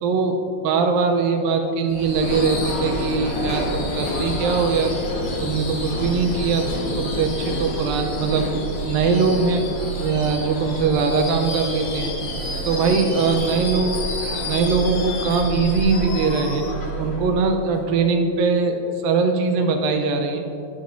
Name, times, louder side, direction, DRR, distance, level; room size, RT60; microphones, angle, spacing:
voice 1, 0.0-4.9 5.4-6.7 7.0-8.5 8.9-9.6 10.0-12.1 12.6-14.0 14.4-16.7 17.0-20.4, right 4 dB, 80° right, 4 dB, 2.2 m, -21 dB
Subway metro underground / Screech, 1.9-17.8, left 1 dB, 80° left, 1.1 m, -28 dB
18.5 x 7.1 x 2.6 m, 2.8 s
omnidirectional pair, 4.6 m